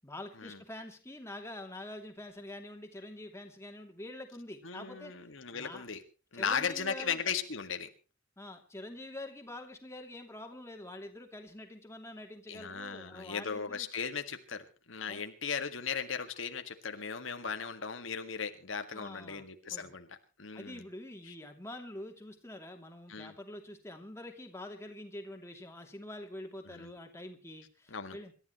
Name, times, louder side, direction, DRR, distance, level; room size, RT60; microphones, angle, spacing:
voice 1, 0.0-5.2 5.5-5.9 6.3-7.2 8.4-13.9 15.1-15.2 18.9-19.9 20.5-28.3, left 1 dB, 15° left, 3 dB, 2.8 m, -46 dB
voice 2, 4.6-6.0 6.3-7.9 12.5-20.8 21.3-21.4 23.1-23.3 26.7-26.9 27.9-28.2, left 6 dB, 85° left, 7 dB, 1.9 m, -37 dB
26.5 x 13.0 x 3.1 m, 0.34 s
head